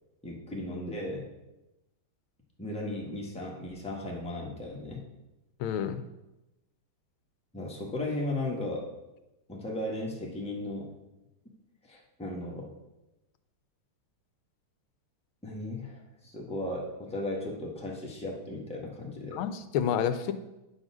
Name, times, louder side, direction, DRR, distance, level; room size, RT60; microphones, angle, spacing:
voice 1, 0.2-1.3 2.6-5.0 7.5-8.9 9.5-10.9 11.9-12.7 15.4-19.4, left 1 dB, 5° left, -2 dB, 1.1 m, -36 dB
voice 2, 5.6-6.0 19.3-20.3, left 8 dB, 90° left, 11 dB, 1.5 m, -29 dB
9.4 x 4.0 x 6.0 m, 0.97 s
omnidirectional pair, 2.2 m